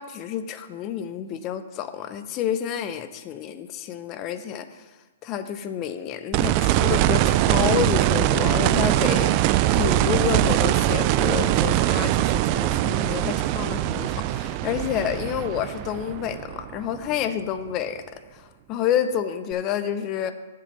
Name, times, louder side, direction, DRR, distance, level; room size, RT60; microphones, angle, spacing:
voice 1, 0.0-4.7 5.2-18.0 18.3-18.4 18.7-20.3, left 9 dB, 30° left, 11 dB, 0.6 m, -29 dB
sound 1, 6.3-17.2 19.5-19.6, right 14 dB, 40° right, 0.3 m, -22 dB
7.6 x 5.2 x 7.1 m, 1.2 s
hypercardioid pair, 130°, 0 cm